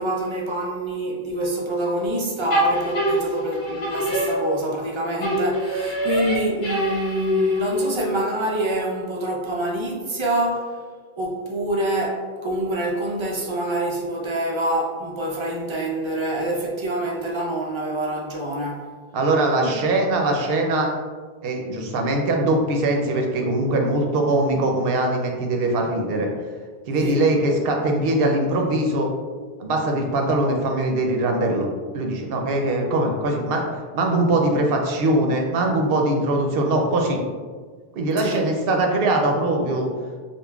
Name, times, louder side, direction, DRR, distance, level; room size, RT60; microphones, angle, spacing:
voice 1, 0.0-10.7 11.2-18.9 19.6-19.7 20.1-20.3 27.0-27.2 38.2-38.4, right 1 dB, 50° right, -1 dB, 0.3 m, -26 dB
sound 1, 2.5-4.9 5.2-8.1, equal, 80° left, 1.2 m, -24 dB
voice 2, 19.1-20.9 21.4-26.3 26.9-29.1 29.6-37.2 38.0-39.9, right 2 dB, 70° right, 2 dB, 0.8 m, -22 dB
5.1 x 2.1 x 2.3 m, 1.5 s
omnidirectional pair, 1.0 m